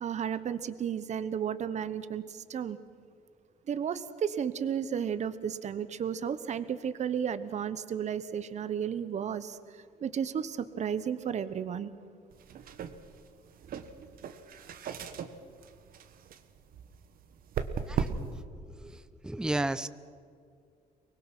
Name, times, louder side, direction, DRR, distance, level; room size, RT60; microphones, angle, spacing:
voice 1, 0.0-2.8 3.7-11.9 13.6-13.7, right 8 dB, 45° right, 13 dB, 1.1 m, -33 dB
sound 1, 12.3-18.4, right 6 dB, 60° right, 1.6 m, -38 dB
voice 2, 18.7-19.9, right 2 dB, 5° right, 15 dB, 0.6 m, -33 dB
24.0 x 20.5 x 6.2 m, 2.3 s
cardioid pair, 110°, 17 cm